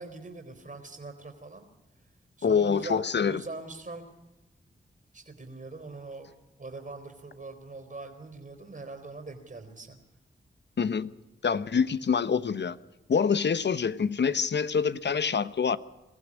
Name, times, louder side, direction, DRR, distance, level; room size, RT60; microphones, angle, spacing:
voice 1, 0.0-1.6 2.4-4.0 5.1-6.3 6.6-10.0, right 3 dB, 40° right, 3.6 m, -42 dB
voice 2, 2.4-3.4 10.8-11.1 11.4-12.8 13.1-15.8, left 6 dB, 60° left, 1.0 m, -26 dB
23.5 x 15.0 x 9.8 m
cardioid pair, 45°, 20 cm